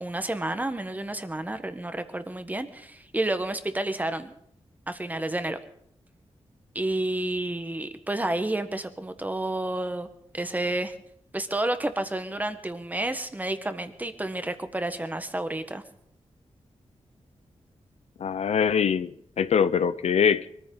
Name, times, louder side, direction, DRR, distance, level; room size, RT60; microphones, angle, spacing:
voice 1, 0.0-4.3 4.9-5.6 6.7-10.1 10.3-10.9 11.3-15.8, right 1 dB, 15° right, 1.2 m, -30 dB
voice 2, 18.2-20.5, left 7 dB, 80° left, 0.6 m, -23 dB
24.0 x 14.0 x 3.9 m
wide cardioid pair, 150°, 11 cm